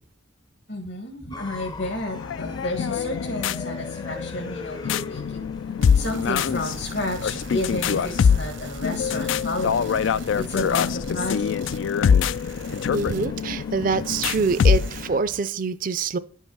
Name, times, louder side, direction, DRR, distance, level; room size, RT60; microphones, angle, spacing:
voice 1, 0.7-5.4 5.9-11.6, left 2 dB, 65° left, 3 dB, 1.4 m, -31 dB
sound 1, 1.3-15.4, left 2 dB, 20° left, 0.5 m, -42 dB
sound 2, 2.1-15.2, left 7 dB, 85° left, 0.4 m, -24 dB
sound 3, 5.8-13.8 14.0-15.0, right 3 dB, 85° right, 1.1 m, -42 dB
voice 2, 12.9-16.2, right 5 dB, 45° right, 12 dB, 0.4 m, -25 dB
10.5 x 5.5 x 6.1 m, 0.42 s
head